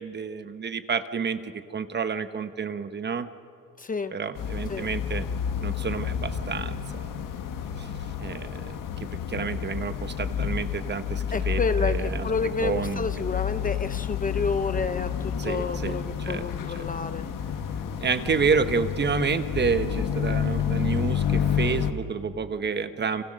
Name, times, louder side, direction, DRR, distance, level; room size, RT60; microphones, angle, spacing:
voice 1, 0.0-3.3 4.1-5.3 5.6-7.2 7.8-7.9 8.2-12.3 12.6-13.2 15.4-16.5 16.7-16.9 18.0-23.2, right 5 dB, 30° right, 10 dB, 1.1 m, -29 dB
voice 2, 3.8-4.1 4.7-4.9 11.3-17.3, left 4 dB, 25° left, 11 dB, 0.7 m, -30 dB
sound 1, 4.4-21.9, left 8 dB, 70° left, 1.7 m, -30 dB
30.0 x 26.5 x 6.5 m, 2.4 s
cardioid pair, 135°, 34 cm